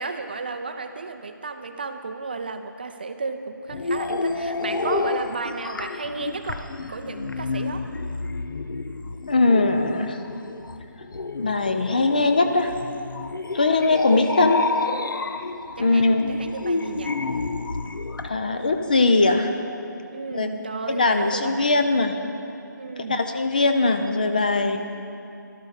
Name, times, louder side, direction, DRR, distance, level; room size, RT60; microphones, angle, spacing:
voice 1, 0.0-7.9 15.8-17.2 20.1-22.0 22.8-23.3, right 4 dB, 30° right, 8 dB, 0.5 m, -33 dB
sound 1, 3.7-18.3, left 3 dB, 85° left, 0.7 m, -30 dB
voice 2, 9.3-10.2 11.3-12.7 13.5-14.7 15.8-16.2 18.2-19.5 20.3-20.5 20.9-22.1 23.1-24.8, left 3 dB, 25° left, 7 dB, 0.4 m, -20 dB
13.5 x 12.0 x 4.9 m, 2.7 s
hypercardioid pair, 175°, 11 cm